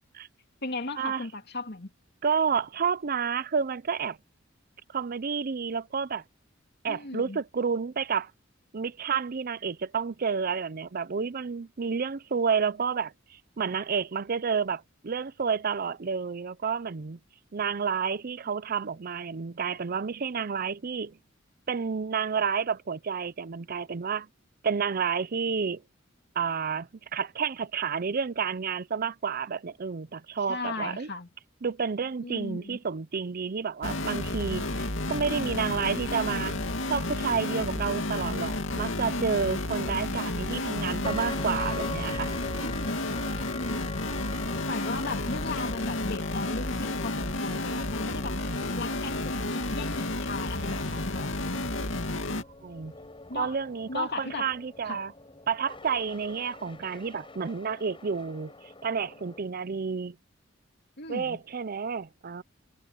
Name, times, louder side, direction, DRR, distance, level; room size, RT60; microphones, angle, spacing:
voice 1, 0.6-1.9 6.9-7.4 30.5-31.3 32.2-32.8 42.6-43.1 43.5-44.0 44.7-48.4 48.8-51.3 53.3-53.6 53.9-54.5 54.9-55.0 61.0-61.4, left 3 dB, 55° left, 2.6 m, -36 dB
voice 2, 2.2-4.2 4.9-6.2 6.8-8.3 8.7-17.2 17.5-21.2 21.7-24.3 24.6-25.8 26.4-31.1 31.6-36.6 36.9-42.3 52.6-52.9 53.3-55.1 55.5-60.2 61.1-62.4, right 6 dB, 50° right, 0.6 m, -30 dB
sound 1, 33.8-52.4, left 2 dB, 75° left, 2.6 m, -31 dB
sound 2, 41.0-59.4, left 3 dB, 25° left, 5.0 m, -44 dB
head